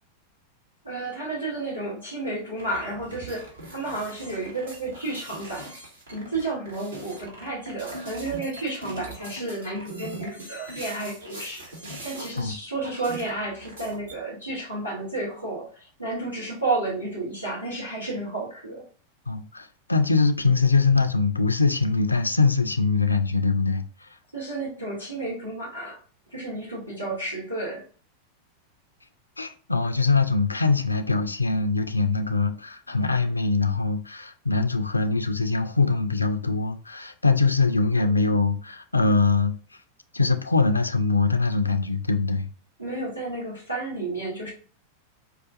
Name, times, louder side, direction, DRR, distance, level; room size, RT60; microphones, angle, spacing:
voice 1, 0.8-5.7 6.1-11.6 12.0-18.8 24.3-26.0 26.3-27.8 37.9-38.4 42.8-44.5, right 2 dB, 90° right, 1.2 m, -32 dB
sound 1, 2.6-12.6 12.8-14.2, right 2 dB, 65° right, 1.5 m, -41 dB
voice 2, 19.3-24.1 29.4-39.6 40.1-42.5, left 4 dB, 80° left, 0.3 m, -23 dB
4.7 x 2.3 x 2.4 m
figure-of-eight pair, 90°, 0 cm